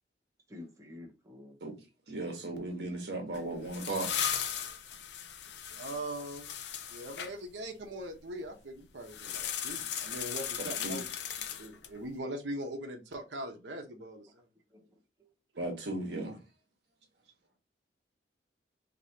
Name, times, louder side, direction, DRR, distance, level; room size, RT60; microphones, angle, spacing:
voice 1, 0.5-1.6 11.5-11.7 14.0-14.1 14.7-15.3, left 2 dB, 15° right, 0.9 m, -51 dB
voice 2, 2.1-4.1 5.7-5.8 10.8-11.0 15.6-16.4, right 2 dB, 70° right, 1.3 m, -36 dB
sound 1, 3.3-7.3 9.1-12.0, left 9 dB, 70° left, 0.6 m, -37 dB
voice 3, 5.8-6.5 6.9-11.0 11.6-14.5, right 1 dB, 85° right, 0.9 m, -41 dB
4.8 x 2.9 x 2.9 m
head